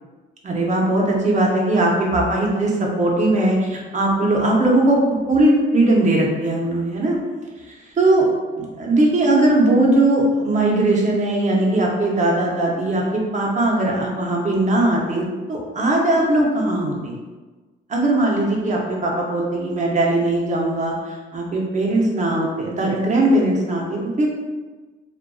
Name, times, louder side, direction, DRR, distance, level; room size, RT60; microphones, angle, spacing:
voice 1, 0.4-5.0 5.3-7.2 8.0-8.2 8.5-17.1 17.9-24.3, right 1 dB, 35° right, -1 dB, 0.6 m, -19 dB
2.4 x 2.2 x 2.3 m, 1.3 s
cardioid pair, 90°, 20 cm